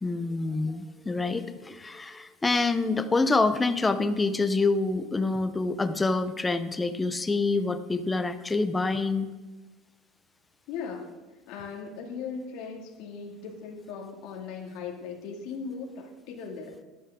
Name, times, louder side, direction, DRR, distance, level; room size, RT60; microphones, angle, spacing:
voice 1, 0.0-9.3, left 3 dB, 10° left, 11 dB, 0.6 m, -26 dB
voice 2, 10.7-11.1 11.5-16.8, left 5 dB, 60° left, 1 dB, 2.1 m, -38 dB
12.0 x 11.5 x 3.6 m, 1.1 s
cardioid pair, 150°, 0 cm